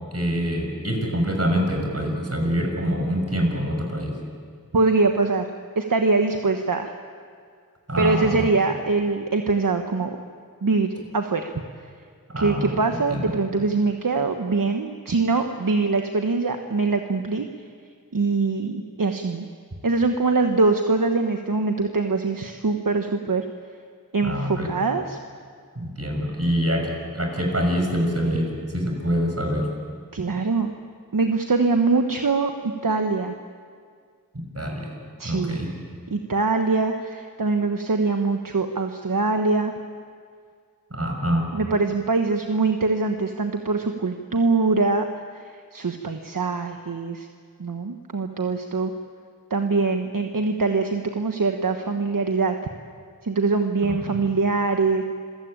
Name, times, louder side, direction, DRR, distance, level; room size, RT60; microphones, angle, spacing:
voice 1, 0.1-4.1 7.9-8.4 12.3-12.8 13.1-13.3 24.2-24.7 25.8-29.7 34.3-34.9 35.2-35.7 40.9-41.5, equal, 45° right, 2 dB, 6.0 m, -25 dB
voice 2, 4.7-5.5 5.7-6.9 8.0-10.1 10.6-11.5 12.4-17.5 18.1-19.5 19.8-23.4 24.1-25.2 30.1-30.7 31.1-33.3 35.2-35.6 36.1-39.7 41.5-47.3 47.6-48.9 49.5-52.5 53.2-55.0, right 3 dB, 65° right, 5 dB, 1.2 m, -23 dB
27.0 x 16.0 x 8.9 m, 2.1 s
wide cardioid pair, 40°, 35 cm